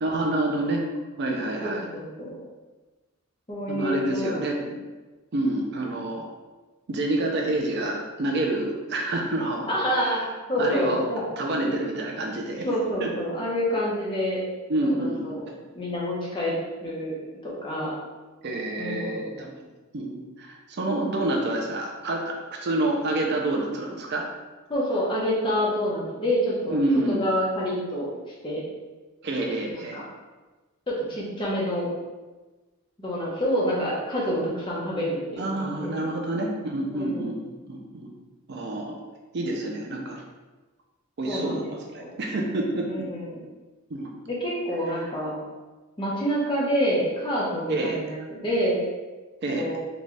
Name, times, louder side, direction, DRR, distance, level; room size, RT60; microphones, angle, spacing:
voice 1, 0.0-0.8 1.2-1.9 3.7-4.6 5.3-6.2 6.9-10.2 10.6-11.0 11.4-12.7 13.0-13.1 14.7-15.4 18.4-19.5 19.9-24.3 26.7-27.2 29.2-30.0 35.4-38.1 38.5-39.0 39.3-40.2 41.2-42.9 43.9-44.1 47.7-48.0 49.4-49.7, right 2 dB, 55° right, 1 dB, 0.5 m, -28 dB
voice 2, 1.6-2.4 3.5-4.7 9.7-10.2 10.5-11.2 12.6-14.4 14.8-15.5 15.7-16.5 16.8-17.2 17.4-17.9 18.8-19.5 24.7-26.8 27.1-28.1 28.4-28.6 29.9-30.0 30.9-31.9 33.0-36.1 36.9-37.2 41.3-41.7 42.0-42.1 42.8-43.4 44.3-45.4 46.0-48.8 49.5-49.8, equal, 25° left, -5 dB, 0.9 m, -27 dB
3.9 x 2.3 x 3.1 m, 1.2 s
head